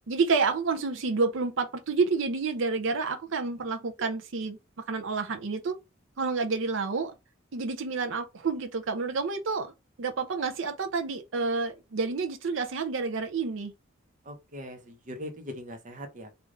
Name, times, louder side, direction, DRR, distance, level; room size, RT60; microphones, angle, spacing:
voice 1, 0.1-4.6 4.9-5.7 6.2-7.1 7.5-9.7 10.0-13.7, right 4 dB, 70° right, 0.5 m, -29 dB
voice 2, 14.3-16.3, equal, 40° right, 0.8 m, -41 dB
3.2 x 2.5 x 3.7 m
head